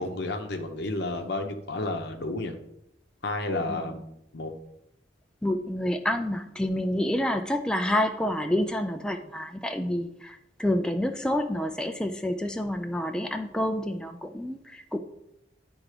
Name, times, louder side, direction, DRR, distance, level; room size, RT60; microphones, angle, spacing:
voice 1, 0.0-2.6 3.2-4.1 4.3-4.5, left 2 dB, 60° left, 5 dB, 0.8 m, -31 dB
voice 2, 5.4-15.0, left 1 dB, 5° left, 5 dB, 0.4 m, -28 dB
10.0 x 3.6 x 4.9 m, 0.83 s
head